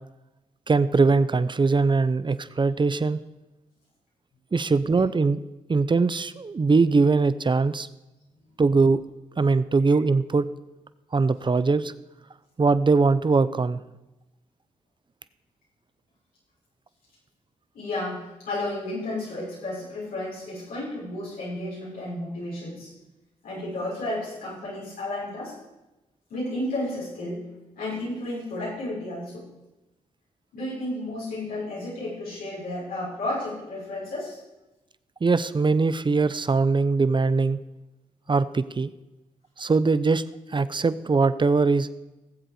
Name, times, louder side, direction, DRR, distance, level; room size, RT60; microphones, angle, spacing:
voice 1, 0.7-3.2 4.5-5.4 5.7-7.9 8.6-9.0 9.4-10.4 11.1-11.9 12.6-13.8 35.2-37.6 38.3-38.9 39.6-40.2 40.5-41.9, right 4 dB, 35° right, 15 dB, 0.7 m, -21 dB
voice 2, 17.7-22.9 23.4-25.6 26.3-27.5 27.8-29.5 30.5-34.4, left 1 dB, 85° left, -6 dB, 5.9 m, -32 dB
18.5 x 7.7 x 5.0 m, 1.0 s
supercardioid pair, 50°, 15 cm